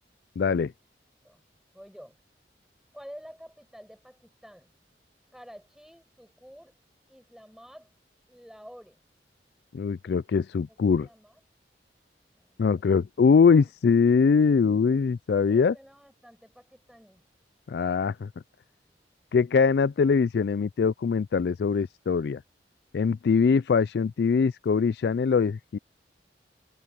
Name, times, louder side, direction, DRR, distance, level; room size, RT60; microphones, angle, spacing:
voice 1, 0.4-0.7 9.7-11.1 12.6-15.7 17.7-18.3 19.3-22.4 22.9-25.8, left 5 dB, 70° left, 0.3 m, -22 dB
voice 2, 1.7-2.2 2.9-4.7 5.3-6.8 7.1-7.9 8.3-9.0 10.7-11.4 12.4-12.7 15.5-17.3, equal, ahead, 7.5 m, -49 dB
head